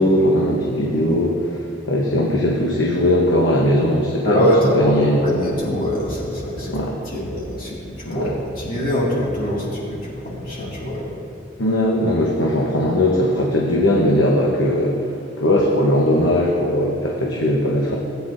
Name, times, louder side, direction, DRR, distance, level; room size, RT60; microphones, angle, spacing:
voice 1, 0.0-5.2 6.6-7.0 8.0-8.3 11.6-14.9 15.4-17.9, left 1 dB, 90° left, -2 dB, 1.1 m, -19 dB
voice 2, 4.2-4.9 5.2-6.7 7.0-11.0, equal, 45° left, -7 dB, 2.4 m, -23 dB
17.5 x 9.3 x 2.7 m, 2.6 s
head